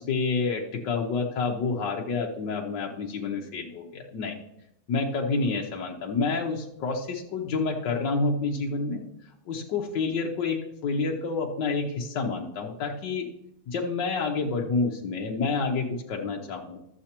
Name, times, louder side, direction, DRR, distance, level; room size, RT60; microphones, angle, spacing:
voice 1, 0.0-4.4 4.9-9.0 9.5-13.3 13.7-16.8, left 4 dB, 85° left, 0 dB, 1.6 m, -28 dB
14.0 x 7.5 x 2.9 m, 0.80 s
omnidirectional pair, 1.9 m